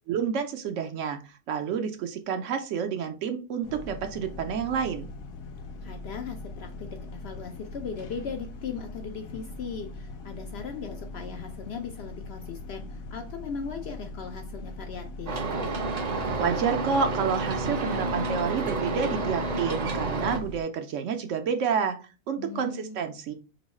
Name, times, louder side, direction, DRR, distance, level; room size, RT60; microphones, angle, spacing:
voice 1, 0.1-1.2 1.5-5.1 16.4-22.0 22.3-23.3, right 6 dB, 70° right, 6 dB, 0.9 m, -29 dB
sound 1, 3.6-20.6, left 2 dB, 85° left, 1.1 m, -41 dB
voice 2, 5.8-15.4 22.4-23.0, left 6 dB, 65° left, 5 dB, 0.7 m, -38 dB
sound 2, 15.3-20.4, right 3 dB, 40° right, 0.6 m, -30 dB
3.1 x 2.7 x 4.1 m, 0.33 s
omnidirectional pair, 1.4 m